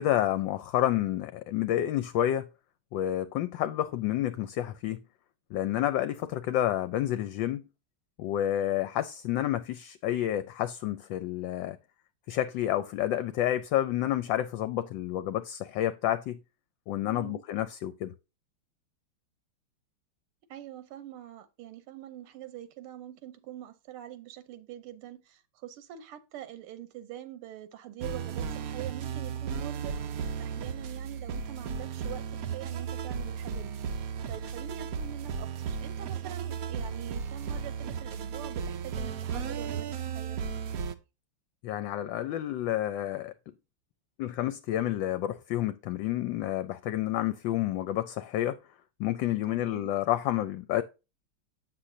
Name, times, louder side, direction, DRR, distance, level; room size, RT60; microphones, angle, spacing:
voice 1, 0.0-2.5 2.9-5.0 5.5-7.6 8.2-11.8 12.3-16.4 16.9-18.1 41.6-43.3 44.2-48.6 49.0-50.8, left 12 dB, 70° left, 1.2 m, -29 dB
voice 2, 17.0-17.4 20.5-32.2 32.5-40.4 49.5-49.9, right 12 dB, 85° right, 1.7 m, -44 dB
sound 1, 28.0-40.9, right 6 dB, 70° right, 0.8 m, -35 dB
7.8 x 6.5 x 2.7 m
omnidirectional pair, 2.4 m